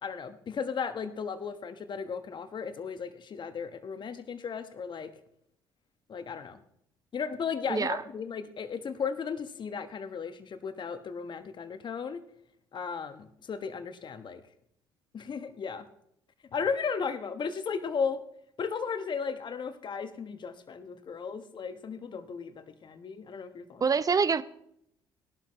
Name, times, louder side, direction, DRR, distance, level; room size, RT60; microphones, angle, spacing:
voice 1, 0.0-5.1 6.1-6.6 7.1-12.2 12.7-14.4 15.1-15.9 16.5-18.2 18.6-23.8, left 6 dB, 45° left, 1.4 m, -35 dB
voice 2, 23.8-24.4, right 5 dB, 30° right, 0.7 m, -25 dB
19.0 x 11.5 x 3.2 m
hypercardioid pair, 50°, 11 cm